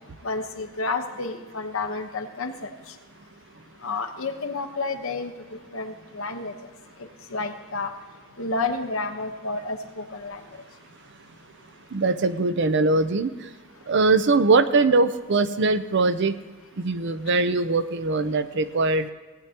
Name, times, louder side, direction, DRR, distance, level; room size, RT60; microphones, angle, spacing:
voice 1, 0.2-2.7 3.8-5.3 5.7-6.5 7.3-7.9 8.4-10.4, left 3 dB, 80° left, 5 dB, 1.1 m, -30 dB
voice 2, 11.9-13.3 13.9-16.4 16.8-19.1, right 3 dB, 60° right, 11 dB, 0.6 m, -21 dB
17.5 x 9.0 x 2.9 m, 1.4 s
head